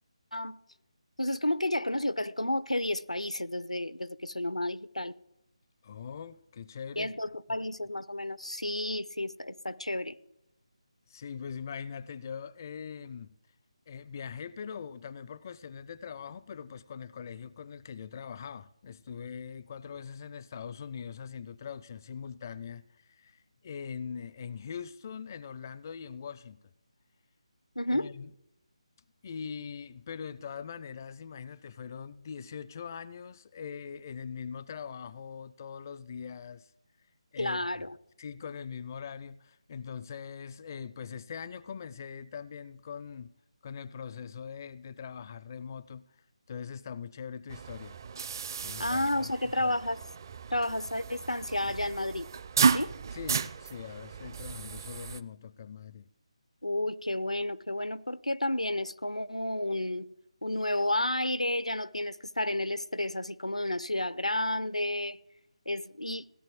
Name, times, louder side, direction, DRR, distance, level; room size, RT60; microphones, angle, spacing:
voice 1, 1.2-5.1 7.0-10.2 27.8-28.1 37.4-38.0 48.8-50.0 50.5-52.3 52.7-52.9 56.6-60.1 60.4-65.2 65.7-66.3, left 1 dB, 90° left, 0.7 m, -31 dB
voice 2, 5.8-7.1 11.1-13.4 13.9-26.6 27.9-28.3 29.2-36.7 37.3-37.8 38.2-43.3 43.6-46.0 46.5-48.0 48.6-49.8 53.1-56.1, left 7 dB, 30° left, 0.4 m, -42 dB
sound 1, 47.5-55.2, right 5 dB, 35° right, 0.6 m, -33 dB
16.5 x 10.5 x 7.6 m
figure-of-eight pair, 155°, 3 cm